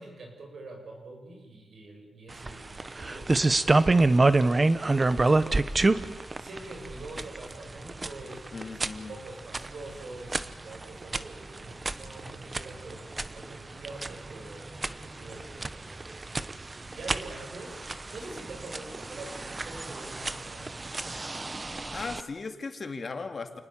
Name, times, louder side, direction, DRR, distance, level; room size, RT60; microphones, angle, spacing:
voice 1, 0.0-5.7 6.4-13.0 13.3-16.5 16.9-17.8 18.1-20.8, right 2 dB, 65° right, 2 dB, 7.3 m, -45 dB
sound 1, 2.3-22.2, right 2 dB, 25° right, 1.0 m, -29 dB
voice 2, 8.5-9.1 21.9-23.6, left 4 dB, 45° left, 7 dB, 2.5 m, -37 dB
28.5 x 19.5 x 7.5 m, 1.1 s
cardioid pair, 100°, 0 cm